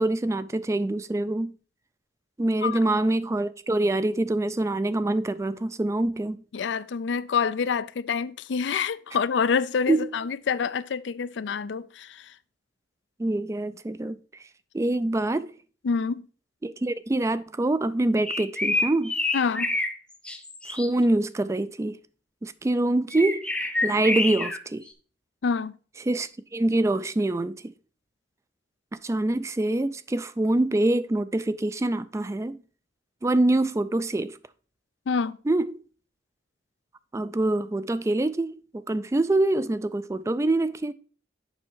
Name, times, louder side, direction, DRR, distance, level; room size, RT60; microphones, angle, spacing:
voice 1, 0.0-1.5 2.4-6.4 9.9-10.1 13.2-14.2 14.7-15.5 16.6-19.1 20.7-22.0 22.4-23.5 23.8-24.8 26.1-27.7 29.0-32.6 33.2-34.4 35.5-35.8 37.1-40.9, right 2 dB, 15° right, 0.3 m, -25 dB
voice 2, 6.5-12.3 15.8-16.3 19.3-19.7 25.4-25.7 35.1-35.4, left 6 dB, 80° left, 0.4 m, -27 dB
sound 1, 18.2-19.9 20.2-20.9 23.1-24.6, left 2 dB, 5° left, 0.8 m, -27 dB
7.0 x 5.5 x 4.4 m
head